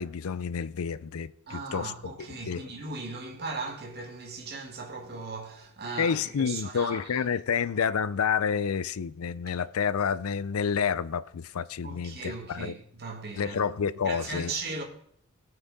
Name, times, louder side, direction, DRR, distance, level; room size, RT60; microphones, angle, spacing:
voice 1, 0.0-1.9 2.2-2.6 6.0-12.7 13.4-14.5, left 6 dB, 80° left, 0.5 m, -29 dB
voice 2, 1.5-7.3 9.5-9.6 11.8-13.6 14.0-14.8, right 3 dB, 50° right, 1.9 m, -38 dB
17.5 x 5.9 x 4.1 m
head